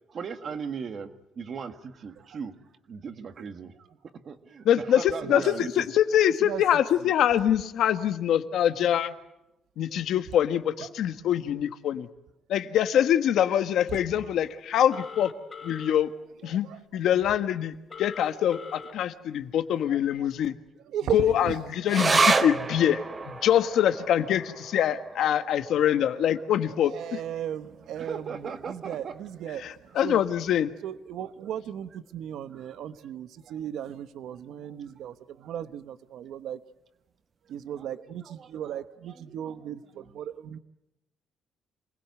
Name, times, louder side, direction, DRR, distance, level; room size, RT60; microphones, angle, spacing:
voice 1, 0.1-2.6 2.9-5.9 14.1-14.2 28.0-29.2 34.3-34.4 37.9-38.5 39.3-40.1, right 6 dB, 40° right, 9 dB, 1.7 m, -38 dB
voice 2, 4.6-9.1 9.8-12.1 12.5-15.3 15.6-16.1 16.4-16.7 16.9-20.5 21.1-23.0 23.3-27.2 29.6-30.7, left 10 dB, 65° left, 10 dB, 1.4 m, -24 dB
voice 3, 6.4-7.1 10.7-10.9 13.9-14.0 16.4-16.8 19.4-19.5 19.9-20.3 20.8-21.5 26.8-30.2 30.8-36.6 37.5-40.6, right 10 dB, 70° right, 12 dB, 1.1 m, -36 dB
Telephone, 14.9-15.9 17.9-18.9, left 5 dB, 25° left, 3.3 m, -42 dB
sound 1, 21.9-28.7 29.0-29.1 29.4-30.1 30.6-30.7, right 4 dB, 20° right, 1.0 m, -30 dB
27.0 x 20.0 x 9.5 m, 0.89 s
cardioid pair, 170°, 0 cm